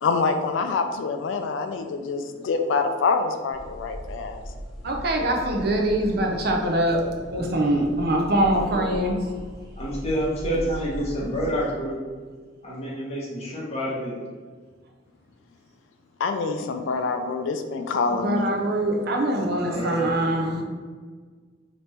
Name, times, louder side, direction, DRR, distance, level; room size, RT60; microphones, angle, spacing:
voice 1, 0.0-4.4 16.2-18.5, left 4 dB, 70° left, 6 dB, 0.3 m, -26 dB
sound 1, 3.5-11.5, equal, ahead, 0.7 m, -38 dB
voice 2, 4.8-9.3 11.2-11.3 18.1-20.6, right 1 dB, 55° right, 1 dB, 0.6 m, -23 dB
voice 3, 9.8-12.0 12.6-14.1 19.6-20.1, equal, 35° left, -5 dB, 1.1 m, -28 dB
3.4 x 2.9 x 4.3 m, 1.5 s
head